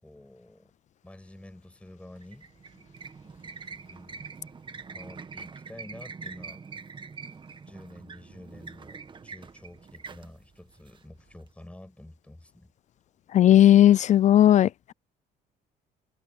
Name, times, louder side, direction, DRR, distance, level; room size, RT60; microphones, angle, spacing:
voice 1, 0.0-0.7 1.0-2.5 3.9-4.3 4.9-6.6 7.7-12.7, left 1 dB, 5° left, 6.6 m, -49 dB
sound 1, 2.2-11.5, right 5 dB, 30° right, 1.5 m, -44 dB
voice 2, 13.3-14.9, left 12 dB, 45° left, 0.4 m, -17 dB
cardioid pair, 110°, 17 cm